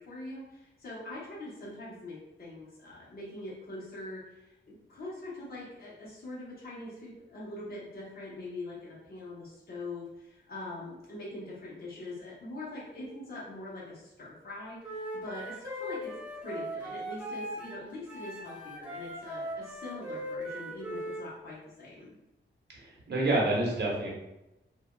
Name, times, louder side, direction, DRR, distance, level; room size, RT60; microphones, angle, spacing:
voice 1, 0.0-22.1, left 2 dB, 50° left, -7 dB, 1.0 m, -43 dB
Wind instrument woodwind instrument, 14.8-17.8 18.1-21.2, equal, 5° right, 0.8 m, -39 dB
voice 2, 22.7-24.1, right 2 dB, 55° right, -3 dB, 1.0 m, -28 dB
3.3 x 2.3 x 2.3 m, 0.93 s
cardioid pair, 85°, 20 cm